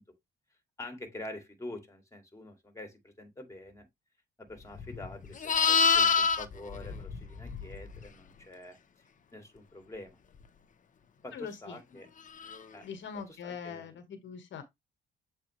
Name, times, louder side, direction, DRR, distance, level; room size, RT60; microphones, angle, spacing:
voice 1, 0.8-3.9 4.4-10.2 11.2-12.1 12.7-12.9 13.1-14.0, left 1 dB, 15° left, 2.4 m, -46 dB
Livestock farm animals working animals, 4.7-8.0 12.4-12.6, left 6 dB, 40° left, 0.9 m, -27 dB
voice 2, 11.3-11.8 12.8-14.6, left 6 dB, 70° left, 1.5 m, -42 dB
7.5 x 4.5 x 3.2 m
cardioid pair, 90°, 20 cm